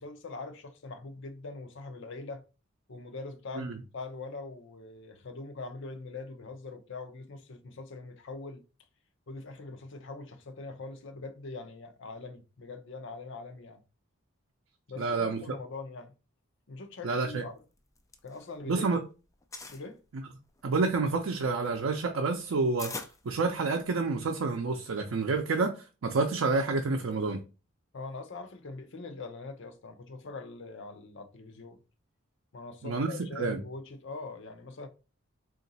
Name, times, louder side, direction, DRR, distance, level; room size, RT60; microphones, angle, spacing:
voice 1, 0.0-2.4 2.9-8.6 9.3-13.8 14.9-16.1 16.7-17.5 18.2-19.0 19.7-20.0 27.9-31.8 32.5-34.9, left 3 dB, 65° left, 0.6 m, -42 dB
voice 2, 15.0-15.4 17.0-17.4 18.7-19.0 20.6-22.9 23.2-25.7 26.0-27.4 32.8-33.6, right 3 dB, 75° right, 0.5 m, -28 dB
sound 1, 17.8-18.9 19.2-19.9 20.5-24.0, left 3 dB, 15° left, 0.4 m, -44 dB
3.8 x 2.5 x 4.0 m
head